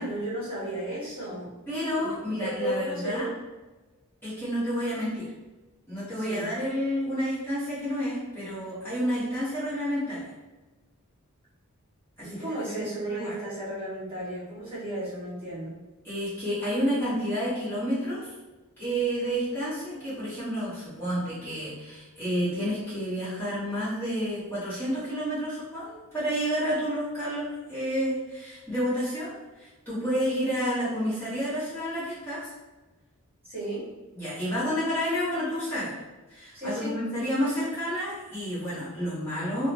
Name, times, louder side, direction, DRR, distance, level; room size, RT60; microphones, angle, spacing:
voice 1, 0.0-1.5 2.0-2.1 2.4-3.3 6.2-6.5 12.2-15.8 33.5-33.9 36.5-36.9, right 1 dB, 25° right, -10 dB, 1.2 m, -34 dB
voice 2, 1.7-3.3 4.2-5.3 5.9-10.3 12.2-12.5 13.0-13.4 16.0-18.3 18.8-29.3 29.6-32.5 34.1-35.9 36.3-39.7, equal, 10° left, -13 dB, 1.1 m, -30 dB
2.9 x 2.0 x 2.8 m, 1.1 s
head